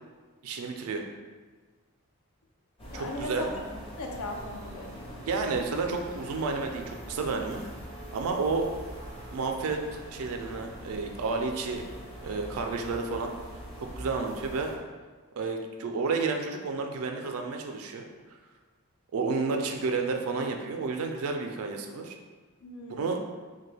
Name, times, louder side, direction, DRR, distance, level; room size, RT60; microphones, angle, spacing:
voice 1, 0.4-1.0 2.9-3.5 5.3-7.6 8.1-8.7 9.3-9.8 10.1-11.8 12.2-13.3 13.8-14.7 15.4-18.1 19.1-22.2 22.9-23.2, right 4 dB, 70° right, 4 dB, 0.4 m, -31 dB
sound 1, 2.8-14.8, right 1 dB, 25° left, 0.5 m, -43 dB
voice 2, 2.9-3.5 4.0-5.2 22.6-23.3, left 2 dB, 75° left, 1 dB, 0.5 m, -38 dB
2.9 x 2.2 x 3.2 m, 1.4 s
head